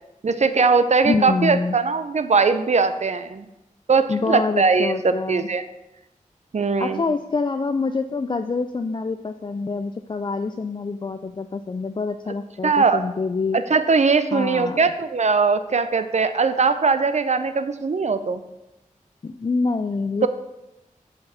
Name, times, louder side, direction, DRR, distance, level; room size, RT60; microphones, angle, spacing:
voice 1, 0.2-3.5 3.9-5.6 6.5-7.0 12.6-13.0 13.7-18.4 20.2-20.3, right 4 dB, 55° right, 11 dB, 0.6 m, -20 dB
voice 2, 1.0-1.8 4.1-5.5 6.8-13.6 14.3-14.8 19.2-20.3, left 4 dB, 35° left, 8 dB, 0.3 m, -26 dB
5.9 x 5.3 x 5.6 m, 0.95 s
cardioid pair, 50°, 14 cm